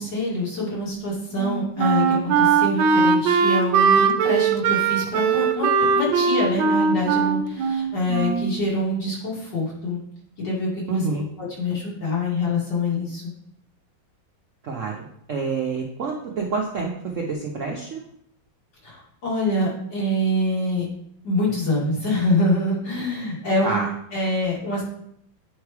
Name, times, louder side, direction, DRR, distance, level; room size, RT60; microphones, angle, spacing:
voice 1, 0.0-10.0 10.4-11.1 11.4-13.2 18.8-20.9 21.2-23.8 24.1-24.8, left 1 dB, 65° left, -6 dB, 3.0 m, -25 dB
Wind instrument woodwind instrument, 1.3-8.6, right 5 dB, 80° right, 1.3 m, -20 dB
voice 2, 10.9-11.3 14.6-18.1 23.6-23.9, right 4 dB, 60° right, 0 dB, 0.8 m, -27 dB
8.9 x 3.2 x 4.7 m, 0.73 s
omnidirectional pair, 2.1 m